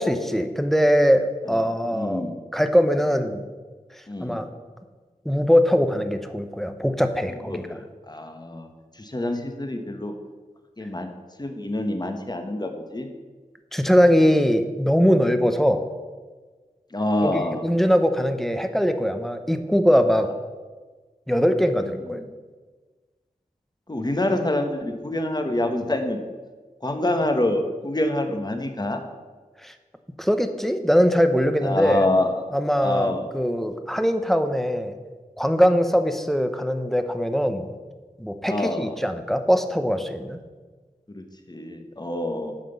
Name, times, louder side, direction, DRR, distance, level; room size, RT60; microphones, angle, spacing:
voice 1, 0.0-2.2 2.5-3.4 4.2-4.5 5.2-7.6 13.7-15.9 17.2-20.3 21.3-22.2 29.6-29.7 30.2-32.0 32.5-35.0 35.4-37.7 38.2-40.4, equal, ahead, 8 dB, 0.9 m, -21 dB
voice 2, 1.5-2.3 4.1-4.4 7.3-8.7 9.0-10.1 10.8-11.1 11.4-13.1 16.9-17.7 21.8-22.2 23.9-26.2 26.8-29.0 31.6-32.3 32.8-33.3 38.5-38.9 41.1-42.6, left 1 dB, 30° left, 5 dB, 1.3 m, -26 dB
9.3 x 6.0 x 6.9 m, 1.4 s
wide cardioid pair, 65°, 14 cm